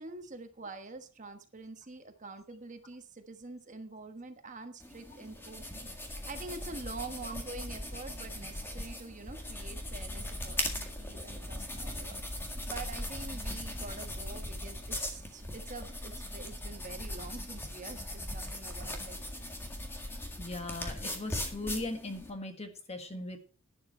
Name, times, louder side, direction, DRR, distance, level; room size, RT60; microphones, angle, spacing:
voice 1, 0.0-12.2 12.7-19.2, right 3 dB, 35° right, 7 dB, 1.2 m, -46 dB
sound 1, 4.8-22.3, left 1 dB, 10° left, 1.8 m, -39 dB
voice 2, 20.4-23.4, left 2 dB, 30° left, 6 dB, 1.6 m, -39 dB
11.5 x 10.5 x 4.4 m, 0.39 s
head